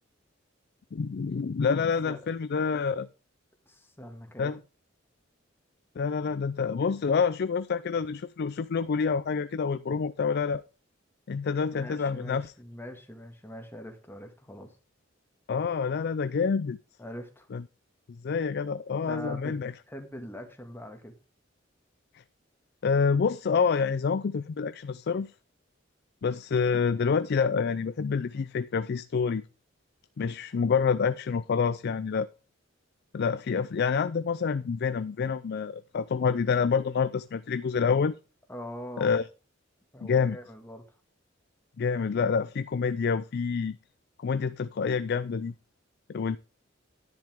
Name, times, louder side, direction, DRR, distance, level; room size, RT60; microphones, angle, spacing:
voice 1, 0.9-3.1 4.4-4.6 6.0-10.6 11.3-12.5 15.5-16.8 17.5-17.6 18.2-19.7 22.8-25.3 26.2-29.4 30.2-32.3 33.1-38.2 39.0-39.2 40.0-40.4 41.8-43.8 44.2-45.5 46.1-46.4, left 5 dB, 55° left, 0.4 m, -27 dB
voice 2, 3.7-4.6 11.7-14.7 17.0-17.5 18.9-19.6 19.9-21.2 38.5-39.2 39.9-40.8, equal, 10° left, 1.9 m, -42 dB
10.5 x 10.5 x 3.6 m
head